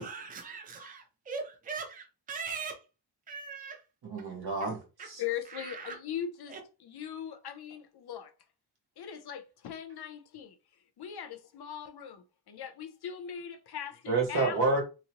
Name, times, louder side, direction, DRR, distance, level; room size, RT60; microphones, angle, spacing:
voice 1, 0.0-2.8 3.3-3.9 4.2-4.3 5.0-5.1 5.4-6.0 6.5-6.6, right 5 dB, 20° right, 0.5 m, -40 dB
voice 2, 4.0-4.8 5.0-5.2 14.1-14.8, right 3 dB, 55° right, 1.2 m, -28 dB
voice 3, 5.2-6.6 6.8-8.3 9.0-10.6 11.0-14.6, left 9 dB, 60° left, 0.5 m, -40 dB
2.8 x 2.8 x 2.8 m
wide cardioid pair, 170°, 44 cm